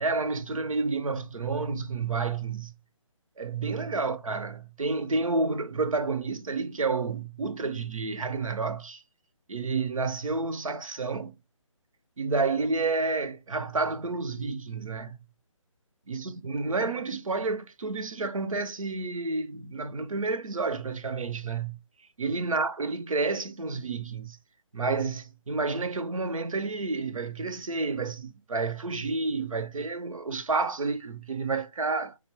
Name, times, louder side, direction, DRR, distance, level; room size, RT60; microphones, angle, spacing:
voice 1, 0.0-2.7 3.4-9.0 9.5-11.4 12.2-15.2 16.1-21.8 22.2-24.4 24.7-32.2, right 3 dB, 85° right, 0.8 m, -30 dB
4.0 x 2.1 x 4.4 m
hypercardioid pair, 165°, 17 cm